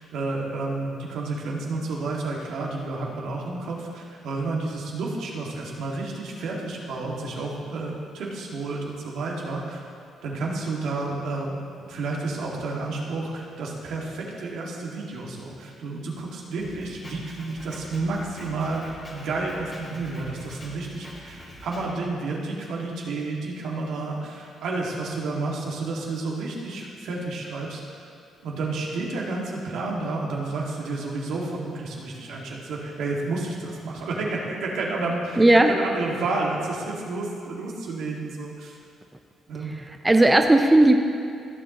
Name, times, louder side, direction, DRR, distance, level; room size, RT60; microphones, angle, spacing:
voice 1, 0.0-9.8 10.2-28.1 28.4-38.7 39.5-39.8, right 3 dB, 80° right, -3 dB, 1.8 m, -31 dB
Drum kit, 16.6-21.9, equal, 30° left, 2.1 m, -44 dB
voice 2, 35.4-35.8 39.7-41.0, right 1 dB, 15° right, 5 dB, 0.5 m, -17 dB
15.5 x 7.5 x 2.9 m, 2.5 s
cardioid pair, 90°, 0 cm